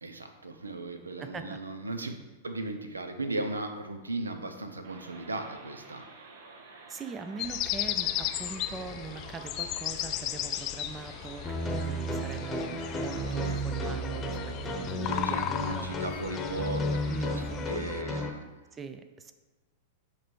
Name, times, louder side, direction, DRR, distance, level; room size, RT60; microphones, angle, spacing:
voice 1, 0.0-6.0 13.7-13.8 15.0-18.4, right 2 dB, 90° right, 7 dB, 0.6 m, -37 dB
voice 2, 1.2-1.6 6.9-15.9 17.1-17.7 18.7-19.3, right 5 dB, 20° right, 8 dB, 0.5 m, -42 dB
sound 1, 4.8-13.6, right 3 dB, 65° right, 0.9 m, -50 dB
sound 2, 7.4-18.0, left 12 dB, 40° left, 0.3 m, -36 dB
sound 3, 11.4-18.3, equal, 15° left, 1.0 m, -33 dB
7.3 x 3.3 x 4.5 m, 1.2 s
hypercardioid pair, 100°, 0 cm